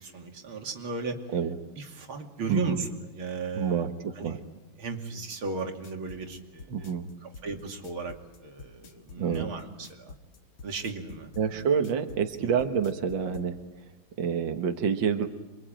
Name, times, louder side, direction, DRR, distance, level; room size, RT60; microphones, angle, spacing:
voice 1, 0.0-1.2 1.8-2.9 3.1-3.9 4.2-4.4 4.8-7.0 7.2-8.2 8.4-10.2 10.6-11.6 12.4-12.5, right 4 dB, 90° right, 3 dB, 3.5 m, -36 dB
voice 2, 3.6-4.4 6.7-7.1 9.2-9.5 11.4-13.6 14.2-15.3, right 7 dB, 65° right, 6 dB, 2.2 m, -27 dB
sound 1, 5.6-13.5, left 3 dB, 80° left, 2.7 m, -47 dB
28.0 x 23.5 x 9.0 m, 1.1 s
omnidirectional pair, 2.2 m